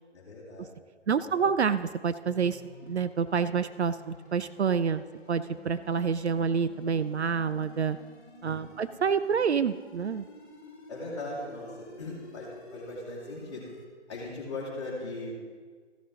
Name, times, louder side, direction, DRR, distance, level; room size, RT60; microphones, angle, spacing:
voice 1, 0.1-0.7 1.1-1.4 8.5-9.0 10.9-13.7 14.1-15.3, left 2 dB, 25° left, -7 dB, 2.5 m, -39 dB
voice 2, 1.1-8.0 8.4-10.3, right 6 dB, 65° right, 13 dB, 0.5 m, -28 dB
sound 1, 2.2-13.9, left 2 dB, 45° left, 2.0 m, -50 dB
14.5 x 6.9 x 3.8 m, 1.5 s
hypercardioid pair, 170°, 36 cm